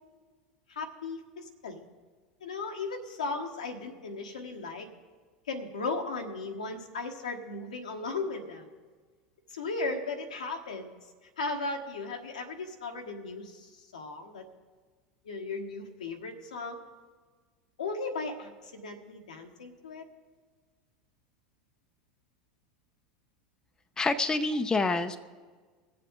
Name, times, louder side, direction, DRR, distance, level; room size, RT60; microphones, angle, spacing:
voice 1, 0.7-1.8 2.4-4.9 5.5-8.7 9.5-10.9 11.4-14.4 15.2-16.8 17.8-20.0, left 3 dB, 90° left, 3 dB, 1.4 m, -36 dB
voice 2, 24.0-25.2, left 3 dB, 20° left, 9 dB, 0.7 m, -27 dB
22.0 x 7.6 x 3.8 m, 1.5 s
hypercardioid pair, 85°, 4 cm